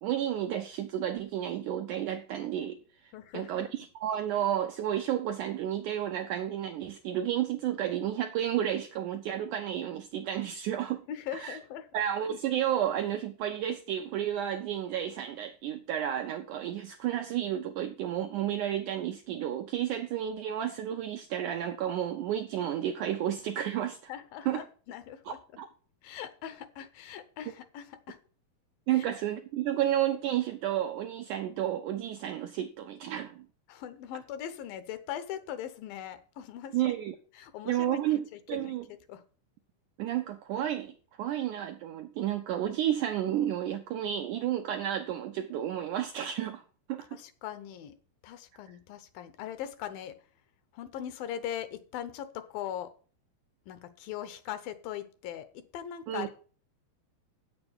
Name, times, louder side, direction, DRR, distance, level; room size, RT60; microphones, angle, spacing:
voice 1, 0.0-11.1 11.4-11.6 11.9-24.0 24.5-24.6 25.3-25.7 28.9-33.5 36.7-37.2 37.7-38.2 38.5-38.8 40.0-46.6 46.9-47.1 56.1-56.3, right 11 dB, 80° right, 1.8 m, -31 dB
voice 2, 3.1-3.5 11.1-11.9 24.1-25.4 26.0-28.2 28.9-29.0 33.7-36.9 37.3-39.2 47.1-48.0 48.2-50.3 50.7-52.9 53.7-56.3, left 10 dB, 75° left, 2.4 m, -40 dB
8.6 x 7.0 x 7.1 m
omnidirectional pair, 4.4 m